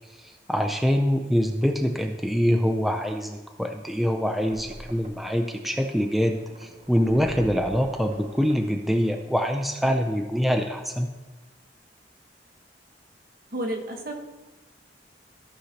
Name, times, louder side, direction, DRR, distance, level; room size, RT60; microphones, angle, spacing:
voice 1, 0.2-11.1, equal, ahead, 4 dB, 0.4 m, -25 dB
sound 1, 4.5-9.5, right 1 dB, 40° right, 1.0 m, -45 dB
voice 2, 13.5-14.1, right 1 dB, 55° right, 2 dB, 1.2 m, -30 dB
14.5 x 6.3 x 2.9 m, 1.2 s
head